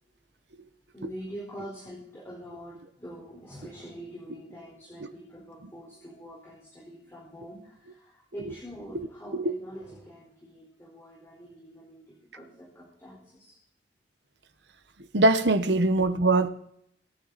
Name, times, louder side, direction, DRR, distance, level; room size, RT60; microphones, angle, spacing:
voice 1, 0.9-13.5, equal, 15° left, 4.4 m, -45 dB
voice 2, 15.1-16.5, right 2 dB, 70° right, 1.2 m, -23 dB
24.5 x 9.9 x 4.2 m
head